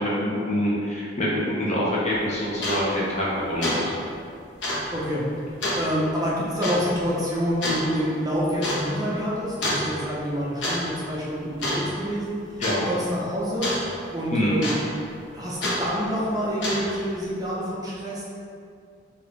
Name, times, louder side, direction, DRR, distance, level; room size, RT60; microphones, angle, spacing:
voice 1, 0.0-3.9 12.6-12.9 14.3-14.6, equal, 35° left, -6 dB, 0.9 m, -25 dB
sound 1, 2.1-2.2 2.6-2.8 3.2-3.4 3.6-3.8 4.1-4.2 4.6-4.8 5.6-5.8 6.6-6.8 7.6-7.8 8.6-8.8 9.6-9.9 10.4-10.8 11.0-11.3 11.6-12.1 12.6-12.8 13.6-13.8 14.6-15.0 15.6-15.8 16.5-17.0, left 1 dB, 80° left, 1.2 m, -27 dB
voice 2, 4.9-5.2 5.8-12.4 12.9-13.7 14.1-14.8 15.3-18.2, equal, 20° right, -6 dB, 0.7 m, -27 dB
5.4 x 2.8 x 3.3 m, 2.4 s
head